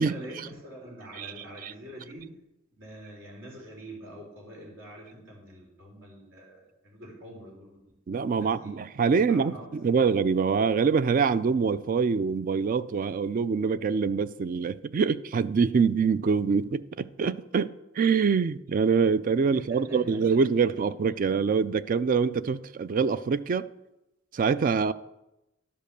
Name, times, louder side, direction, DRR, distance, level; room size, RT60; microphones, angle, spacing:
voice 1, 0.0-2.3 2.7-7.8 8.3-8.7 9.1-10.1 19.5-20.2, right 1 dB, 65° right, 3.6 m, -45 dB
voice 2, 8.1-23.7 24.3-24.9, right 5 dB, 40° right, 0.3 m, -25 dB
11.0 x 5.3 x 6.7 m
head